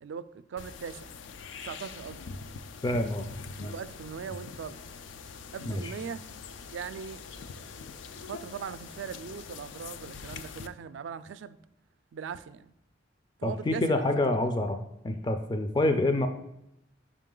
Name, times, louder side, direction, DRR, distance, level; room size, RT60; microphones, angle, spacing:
voice 1, 0.0-1.2 1.6-2.2 3.6-4.8 5.5-6.2 6.7-11.6 12.1-12.7 13.4-14.4, right 6 dB, 85° right, 0.3 m, -40 dB
sound 1, 0.6-10.7, left 5 dB, 85° left, 0.4 m, -44 dB
voice 2, 2.8-3.3 3.6-3.7 5.7-5.9 13.4-14.8 15.0-16.3, left 1 dB, 25° left, 0.4 m, -27 dB
5.4 x 5.0 x 3.7 m
head